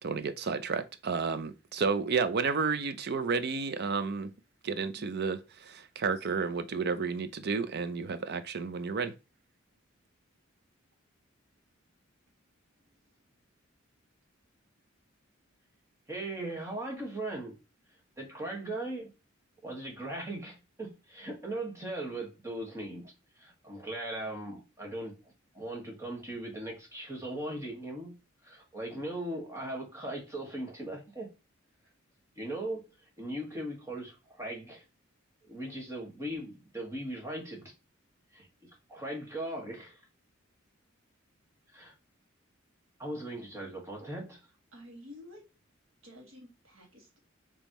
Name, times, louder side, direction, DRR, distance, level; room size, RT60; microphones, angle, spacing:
voice 1, 0.0-4.3 4.6-9.1, right 5 dB, 55° right, 0.5 m, -31 dB
voice 2, 12.8-13.2 44.7-45.4 46.0-47.2, left 1 dB, 70° right, 2.0 m, -51 dB
voice 3, 16.1-17.6 18.2-19.1 19.6-25.2 25.5-28.1 28.4-31.3 32.4-32.9 33.2-34.8 35.5-37.7 38.3-38.5 38.9-40.0 41.7-41.9 43.0-44.4, right 1 dB, 15° right, 1.7 m, -39 dB
5.2 x 3.3 x 3.1 m
head